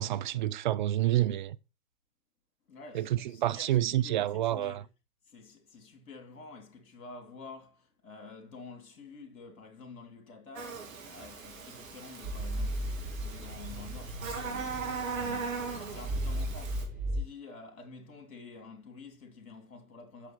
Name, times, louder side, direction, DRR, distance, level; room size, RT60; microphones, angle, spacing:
voice 1, 0.0-1.6 2.9-4.8, right 13 dB, 35° right, 0.4 m, -28 dB
voice 2, 2.7-4.9 5.3-20.3, left 4 dB, 60° left, 2.4 m, -49 dB
Buzz, 10.6-16.8, right 5 dB, 60° right, 2.7 m, -39 dB
sound 1, 12.2-17.2, right 1 dB, 15° right, 5.5 m, -36 dB
8.2 x 6.3 x 4.2 m
figure-of-eight pair, 100°, 46 cm